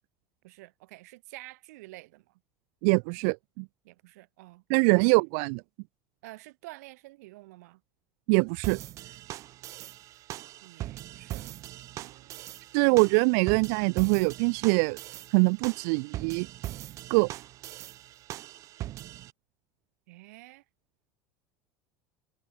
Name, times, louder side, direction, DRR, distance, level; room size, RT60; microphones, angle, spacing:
voice 1, 0.4-2.4 3.8-5.1 6.2-7.8 10.6-11.5 12.0-12.5 20.1-20.6, right 21 dB, 90° right, 3.4 m, -49 dB
voice 2, 2.8-3.7 4.7-5.6 8.3-8.8 12.7-15.0 15.3-16.5 17.1-17.3, right 40 dB or more, 65° right, 0.4 m, -23 dB
sound 1, 8.6-19.3, right 14 dB, 40° right, 2.4 m, -41 dB
cardioid pair, 165°, 8 cm